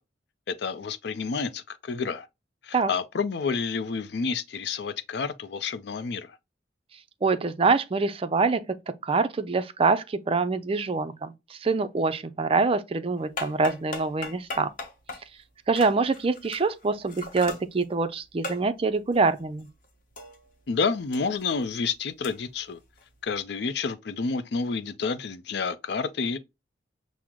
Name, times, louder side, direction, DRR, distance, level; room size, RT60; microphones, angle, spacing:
voice 1, 0.5-2.3 2.6-6.4 20.7-22.8 23.2-26.4, left 5 dB, 60° left, 0.4 m, -29 dB
voice 2, 7.2-8.6 9.0-14.7 15.7-19.7, right 4 dB, 30° right, 0.4 m, -25 dB
sound 1, 13.2-20.7 21.0-23.4, left 2 dB, 45° left, 0.9 m, -40 dB
6.0 x 2.0 x 3.6 m
head